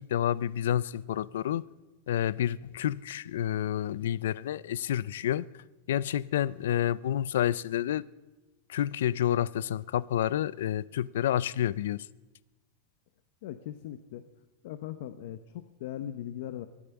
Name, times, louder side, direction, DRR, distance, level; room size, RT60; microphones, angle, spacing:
voice 1, 0.0-1.6 2.1-5.5 5.9-8.0 8.7-12.1, left 11 dB, 90° left, 0.4 m, -29 dB
voice 2, 13.4-14.2 14.6-16.7, left 11 dB, 60° left, 0.8 m, -39 dB
23.5 x 8.7 x 7.1 m
supercardioid pair, 160°, 0 cm